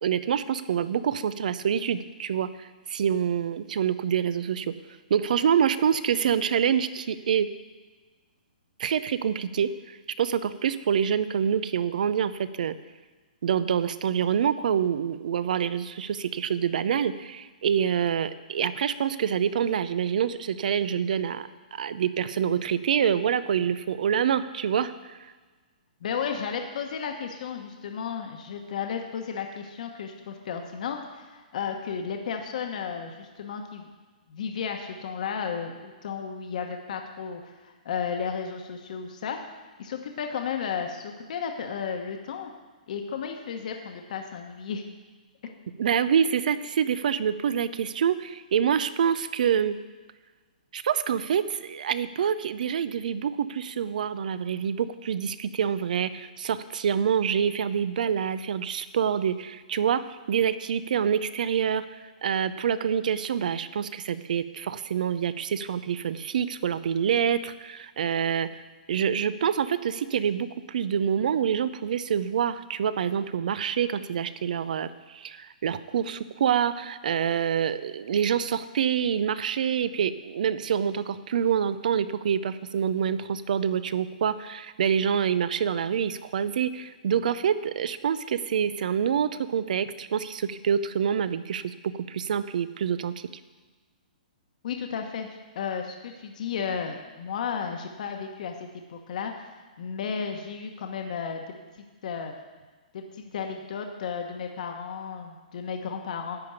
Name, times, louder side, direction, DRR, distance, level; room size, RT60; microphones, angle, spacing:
voice 1, 0.0-4.7 5.1-7.5 8.8-9.7 10.2-12.7 13.4-21.5 21.8-25.2 45.8-49.8 50.7-60.0 60.3-61.8 62.2-68.5 68.9-93.1, right 8 dB, 65° right, 14 dB, 0.6 m, -26 dB
voice 2, 26.0-33.9 34.3-39.4 39.8-42.5 42.9-44.8 45.4-45.5 94.6-99.4 99.8-101.4 102.0-102.3 102.9-106.4, left 6 dB, 60° left, 4 dB, 1.2 m, -33 dB
10.5 x 5.2 x 8.1 m, 1.3 s
hypercardioid pair, 150°, 5 cm